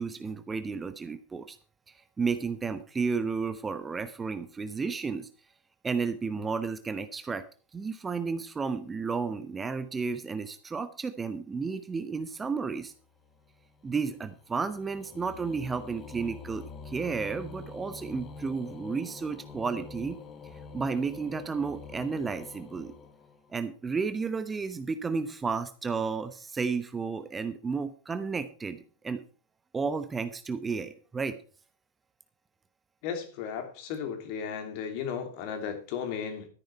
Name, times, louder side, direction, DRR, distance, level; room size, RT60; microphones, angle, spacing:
voice 1, 0.0-1.6 1.9-5.3 5.8-7.5 7.7-12.9 13.8-20.2 20.7-22.9 23.5-29.2 29.7-31.4, right 5 dB, 15° right, 11 dB, 1.0 m, -32 dB
sound 1, 12.8-23.8, left 4 dB, 25° left, 1.4 m, -46 dB
voice 2, 33.0-36.5, left 7 dB, 45° left, 6 dB, 3.0 m, -35 dB
13.0 x 10.5 x 4.5 m, 0.37 s
figure-of-eight pair, 90°, 0 cm